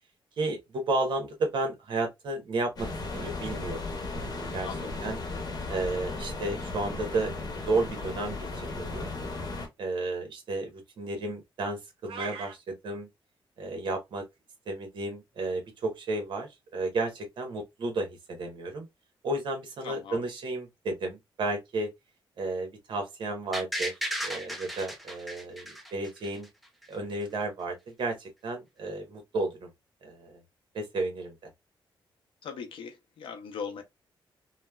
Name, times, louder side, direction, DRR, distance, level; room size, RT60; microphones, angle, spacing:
voice 1, 0.4-3.8 4.1-4.7 5.0-5.2 5.7-7.4 7.6-9.1 9.8-13.1 13.6-14.2 14.7-18.9 19.2-21.9 22.4-23.9 24.2-26.5 26.9-29.7 30.0-30.4 30.7-31.4, right 2 dB, 65° right, 1.0 m, -32 dB
sound 1, 2.8-9.7, left 3 dB, 45° left, 0.9 m, -36 dB
voice 2, 4.6-4.9 19.8-20.2 32.4-33.8, left 6 dB, 75° left, 0.6 m, -39 dB
sound 2, 12.0-12.5, right 6 dB, 85° right, 0.5 m, -38 dB
sound 3, 23.5-26.5 26.8-26.9, equal, ahead, 0.5 m, -35 dB
3.1 x 2.1 x 2.2 m
cardioid pair, 130°, 9 cm